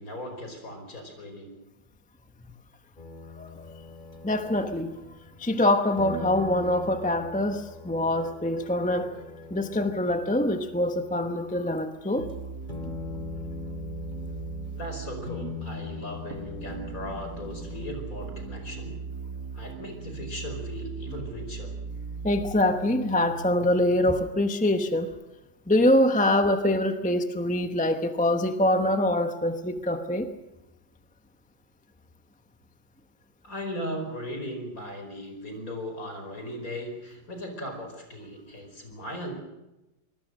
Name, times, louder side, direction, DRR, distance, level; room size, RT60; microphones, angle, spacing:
voice 1, 0.0-1.6 14.7-19.0 19.5-21.7 33.4-39.3, equal, 45° left, 5 dB, 5.3 m, -37 dB
sound 1, 3.0-5.6 6.0-11.8 12.1-12.3 12.6-14.8 15.3-18.2, left 5 dB, 25° left, 3.1 m, -42 dB
voice 2, 4.2-4.9 5.4-9.1 9.5-12.3 22.2-25.1 25.7-30.3, left 1 dB, 5° left, 7 dB, 0.7 m, -24 dB
sound 2, 12.2-24.2, right 4 dB, 55° right, 2.4 m, -38 dB
25.5 x 20.5 x 6.6 m, 0.98 s
omnidirectional pair, 2.1 m